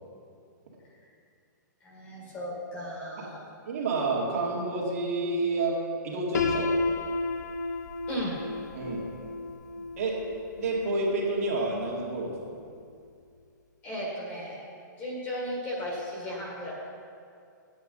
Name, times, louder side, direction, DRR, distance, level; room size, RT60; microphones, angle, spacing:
voice 1, 1.8-3.4 8.1-8.4 13.8-14.6 15.0-16.7, equal, 15° left, -4 dB, 1.7 m, -35 dB
voice 2, 3.7-6.7 8.7-9.1 10.0-10.3 10.6-12.6, right 2 dB, 50° right, -3 dB, 2.0 m, -29 dB
Piano, 6.3-12.2, left 3 dB, 60° left, 0.6 m, -33 dB
9.1 x 8.2 x 5.4 m, 2.4 s
hypercardioid pair, 175°, 10 cm